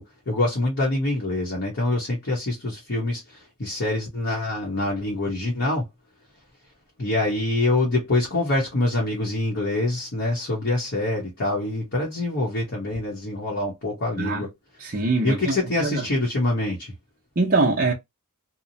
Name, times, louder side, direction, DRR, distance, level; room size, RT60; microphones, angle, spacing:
voice 1, 0.0-5.8 7.0-14.5 15.2-16.9, left 2 dB, 55° left, 0.9 m, -25 dB
voice 2, 14.8-16.0 17.4-17.9, right 3 dB, 40° right, 0.6 m, -23 dB
2.8 x 2.1 x 2.7 m
head